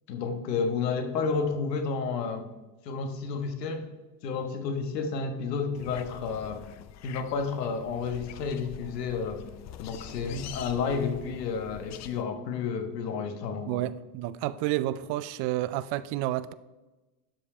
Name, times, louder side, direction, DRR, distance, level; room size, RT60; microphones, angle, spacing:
voice 1, 0.1-2.5 2.8-4.0 4.2-6.7 7.0-9.4 9.8-13.7, left 5 dB, 85° left, 1.4 m, -31 dB
sound 1, 5.7-12.2, left 10 dB, 35° left, 0.5 m, -45 dB
voice 2, 13.7-16.5, right 14 dB, 55° right, 0.6 m, -30 dB
12.0 x 5.1 x 4.4 m
hypercardioid pair, 90°, 48 cm